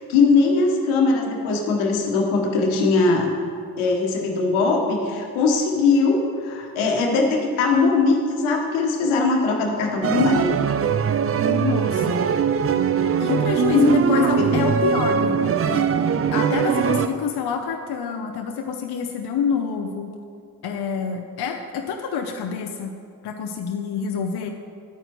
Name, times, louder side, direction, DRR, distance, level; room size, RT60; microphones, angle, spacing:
voice 1, 0.0-3.3 3.8-10.6 13.7-14.6, left 3 dB, 80° left, 1 dB, 1.4 m, -20 dB
sound 1, 10.0-17.1, right 7 dB, 30° right, 0.5 m, -21 dB
voice 2, 11.5-12.2 13.2-20.1 20.6-22.9 23.2-24.5, left 6 dB, 55° left, 3 dB, 0.8 m, -27 dB
12.0 x 8.8 x 3.1 m, 2.3 s
hypercardioid pair, 40°, 48 cm